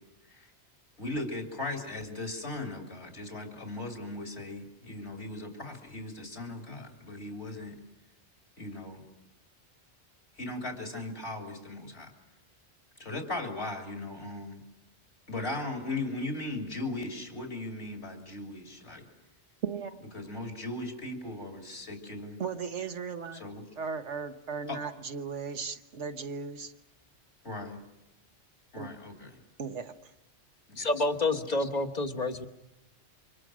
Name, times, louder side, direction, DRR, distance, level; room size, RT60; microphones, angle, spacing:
voice 1, 1.0-7.8 8.6-9.0 10.4-12.1 13.0-14.6 15.3-19.1 20.1-22.4 23.3-23.6 24.7-24.8 27.4-27.8 28.7-29.4 30.7-30.9 31.6-31.7, left 2 dB, 65° left, 2 dB, 3.2 m, -38 dB
voice 2, 19.6-20.0 22.4-23.4 23.8-26.7 28.8-28.9 29.6-30.1, right 5 dB, 80° right, 8 dB, 1.6 m, -36 dB
voice 3, 30.8-32.5, left 2 dB, 35° left, 7 dB, 1.4 m, -28 dB
29.0 x 25.0 x 6.2 m, 0.91 s
omnidirectional pair, 1.2 m